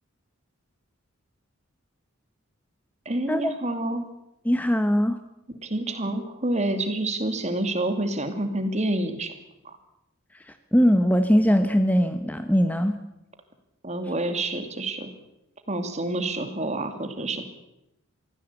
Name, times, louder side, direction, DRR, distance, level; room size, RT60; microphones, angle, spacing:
voice 1, 3.1-4.0 5.6-9.3 9.6-9.8 13.8-15.1 15.7-17.4, right 1 dB, 30° right, 8 dB, 2.5 m, -28 dB
voice 2, 4.4-5.2 10.5-13.0, equal, 5° left, 9 dB, 1.0 m, -21 dB
23.5 x 15.5 x 8.3 m, 0.87 s
head